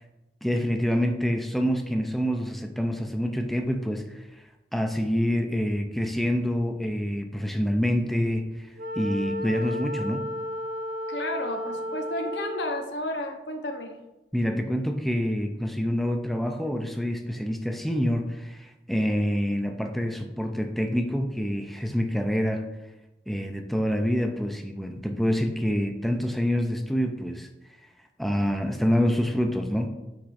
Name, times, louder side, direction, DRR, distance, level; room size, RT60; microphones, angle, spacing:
voice 1, 0.4-4.3 4.7-8.7 8.9-10.3 14.3-22.6 23.3-27.5 28.2-29.9, equal, ahead, 4 dB, 0.4 m, -26 dB
Wind instrument woodwind instrument, 8.8-12.9, left 1 dB, 75° right, 2.4 m, -33 dB
voice 2, 11.1-14.0, left 1 dB, 85° left, 5 dB, 0.9 m, -32 dB
8.2 x 6.1 x 2.5 m, 1.0 s
head